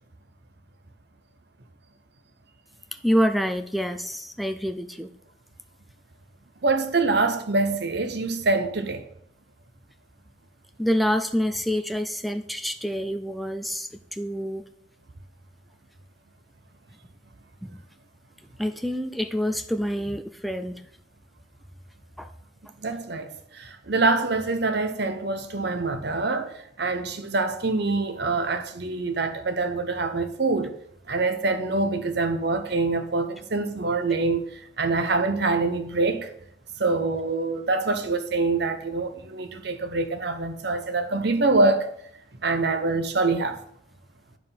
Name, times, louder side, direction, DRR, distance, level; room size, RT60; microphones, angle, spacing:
voice 1, 3.0-5.1 10.8-14.6 17.6-17.7 18.6-20.8 22.2-22.3, equal, ahead, 0.4 m, -27 dB
voice 2, 6.6-9.0 22.8-30.8 31.1-36.3 36.8-41.9 42.4-43.6, right 3 dB, 60° right, 0.9 m, -25 dB
11.0 x 4.8 x 5.6 m
head